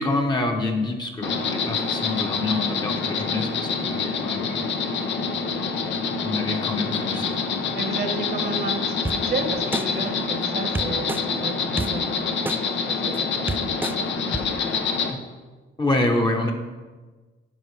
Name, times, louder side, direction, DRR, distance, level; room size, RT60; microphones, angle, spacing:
voice 1, 0.0-4.7 6.2-7.3 15.8-16.5, left 2 dB, 20° left, 2 dB, 1.0 m, -26 dB
Insect, 1.2-15.1, left 5 dB, 65° left, 0.7 m, -26 dB
voice 2, 7.8-14.1, right 3 dB, 50° right, 4 dB, 1.3 m, -32 dB
sound 1, 9.0-9.2 9.7-9.8 10.7-11.2 11.8-11.9 12.4-12.6 13.1-13.2 13.5-13.9 14.3-14.4, right 3 dB, 10° right, 0.3 m, -27 dB
12.0 x 4.3 x 3.2 m, 1.3 s
cardioid pair, 90°, 20 cm